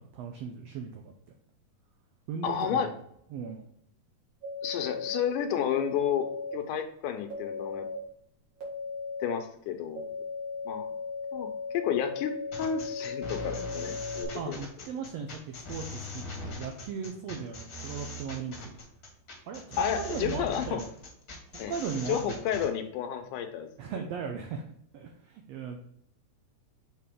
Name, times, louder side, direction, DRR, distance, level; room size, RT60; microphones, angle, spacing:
voice 1, 0.1-1.1 2.3-3.0 3.3-3.6 14.3-18.6 19.5-20.9 21.7-22.4 23.8-24.6 24.9-25.8, right 6 dB, 85° right, 3 dB, 1.4 m, -37 dB
voice 2, 2.4-2.9 4.6-7.9 9.2-10.1 10.7-10.9 11.3-11.5 11.7-14.6 19.8-20.8 21.6-21.7 22.1-23.7, left 8 dB, 80° left, 6 dB, 2.1 m, -31 dB
sound 1, 4.4-5.2 5.8-6.5 7.3-8.0 8.6-9.3 9.9-14.2, left 4 dB, 45° right, 2.1 m, -37 dB
sound 2, 12.5-22.7, left 1 dB, 45° left, 1.3 m, -41 dB
6.7 x 4.1 x 3.6 m, 0.70 s
omnidirectional pair, 3.7 m